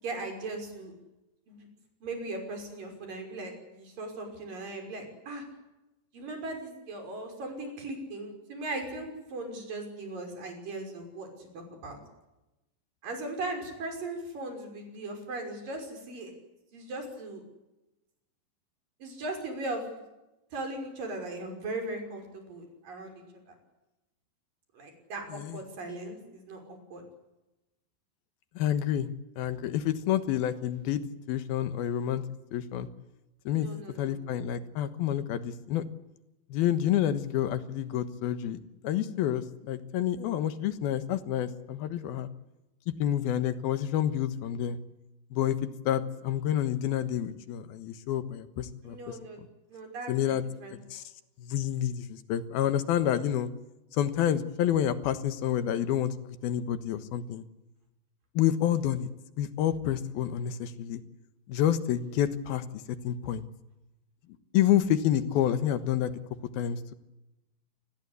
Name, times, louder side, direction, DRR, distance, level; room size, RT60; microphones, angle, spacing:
voice 1, 0.0-0.9 1.5-1.7 2.0-5.4 6.1-12.0 13.0-16.3 16.7-17.4 19.0-19.9 20.5-23.6 24.7-27.0 33.5-34.1 48.9-49.4 49.7-50.3 50.6-51.0, right 2 dB, 65° right, 4 dB, 7.5 m, -38 dB
voice 2, 28.6-29.1 29.4-31.0 31.3-32.2 32.5-32.9 33.5-33.7 34.0-35.8 36.5-42.3 43.0-44.8 45.3-49.5 50.1-50.4 50.9-51.0 51.4-53.5 53.9-57.4 58.3-59.1 59.4-61.0 61.5-62.6 63.0-63.5 64.5-66.1 66.5-66.9, left 10 dB, 85° left, 12 dB, 3.2 m, -28 dB
27.5 x 20.5 x 8.3 m, 0.98 s
omnidirectional pair, 4.2 m